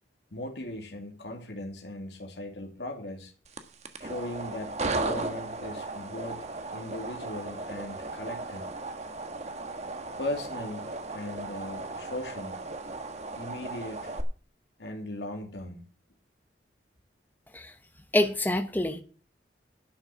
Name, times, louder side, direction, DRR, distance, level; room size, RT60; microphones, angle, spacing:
voice 1, 0.3-3.3 4.0-6.4 6.7-8.7 10.2-12.6 13.3-14.1 14.8-15.9, left 1 dB, 75° left, 2.6 m, -38 dB
sound 1, 3.4-14.2, right 2 dB, 40° right, 1.4 m, -36 dB
voice 2, 18.1-19.0, left 1 dB, 10° left, 1.0 m, -26 dB
11.5 x 6.6 x 6.9 m
head